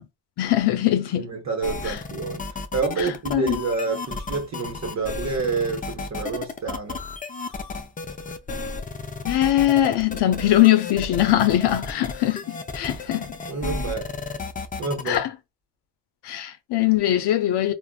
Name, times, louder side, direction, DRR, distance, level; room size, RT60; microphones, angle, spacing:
voice 1, 0.4-1.3 1.9-2.0 3.0-3.6 9.2-13.4 15.1-15.3 16.2-17.7, left 13 dB, 70° left, 0.6 m, -21 dB
voice 2, 1.2-7.0 13.5-14.1 14.8-15.2, right 4 dB, 40° right, 0.8 m, -28 dB
sound 1, 1.6-15.2, left 3 dB, 20° left, 0.4 m, -33 dB
3.4 x 2.0 x 2.2 m
supercardioid pair, 65°, 42 cm